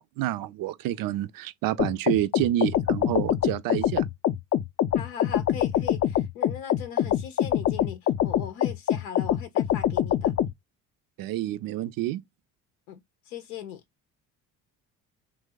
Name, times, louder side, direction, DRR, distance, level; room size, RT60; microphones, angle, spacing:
voice 1, 0.2-4.0 11.2-12.2, right 14 dB, 55° right, 0.5 m, -28 dB
sound 1, 1.8-10.5, left 10 dB, 35° left, 0.5 m, -25 dB
voice 2, 4.9-10.3 12.9-13.8, left 8 dB, 85° left, 0.7 m, -39 dB
3.1 x 2.0 x 3.4 m
hypercardioid pair, 60°, 42 cm